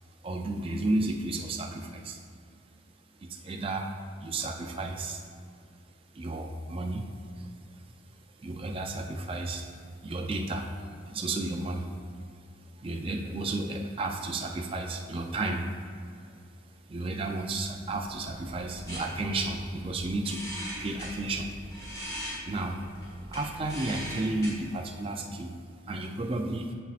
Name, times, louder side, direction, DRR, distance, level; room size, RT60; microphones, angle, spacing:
voice 1, 0.2-2.2 3.2-3.9 4.2-5.2 6.1-7.5 8.4-9.7 10.0-10.8 11.1-11.9 12.8-15.7 16.9-20.5 20.8-21.7 22.4-22.8 23.3-25.5 25.9-26.7, right 2 dB, 30° right, 2 dB, 0.4 m, -32 dB
sound 1, 17.8-24.5, equal, 20° left, 1.6 m, -41 dB
7.3 x 7.1 x 2.4 m, 2.3 s
head